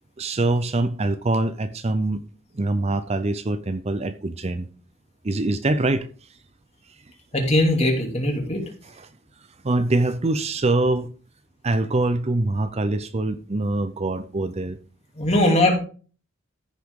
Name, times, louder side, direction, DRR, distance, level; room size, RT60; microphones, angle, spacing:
voice 1, 0.2-2.2 2.5-4.7 5.2-6.1 9.0-9.1 9.6-11.1 11.6-14.8, right 2 dB, 30° right, 0.6 m, -24 dB
voice 2, 7.3-8.6 15.1-15.8, left 1 dB, 30° left, 2.8 m, -20 dB
14.5 x 6.6 x 3.7 m
head